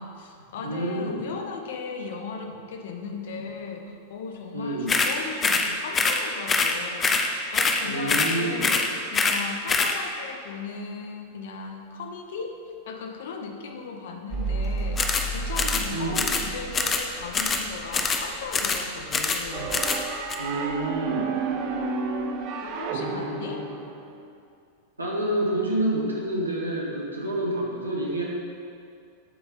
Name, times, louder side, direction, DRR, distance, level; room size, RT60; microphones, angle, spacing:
voice 1, 0.0-12.6 12.9-19.8 22.6-23.7, left 5 dB, 55° left, 4 dB, 0.7 m, -37 dB
voice 2, 0.6-1.2 4.5-5.0 7.8-8.7 15.9-16.3 20.4-21.3 25.0-28.2, right 1 dB, 80° right, -3 dB, 1.2 m, -28 dB
sound 1, 4.9-5.1 5.4-5.7 5.9-6.2 6.5-6.7 7.0-7.3 7.5-7.8 8.1-8.3 8.6-8.9 9.1-9.4 9.7-9.9 15.0-15.3 15.6-15.9 16.1-16.5 16.7-17.1 17.3-17.6 17.9-18.2 18.5-18.8 19.1-19.4 19.7-20.0 20.3-20.4, left 4 dB, 20° left, 0.5 m, -24 dB
Mechanical fan, 14.3-21.2 21.4-22.2, right 2 dB, 25° right, 1.1 m, -34 dB
sound 2, 19.5-24.3, right 4 dB, 40° right, 0.5 m, -31 dB
7.7 x 3.4 x 5.5 m, 2.4 s
figure-of-eight pair, 90°, 0 cm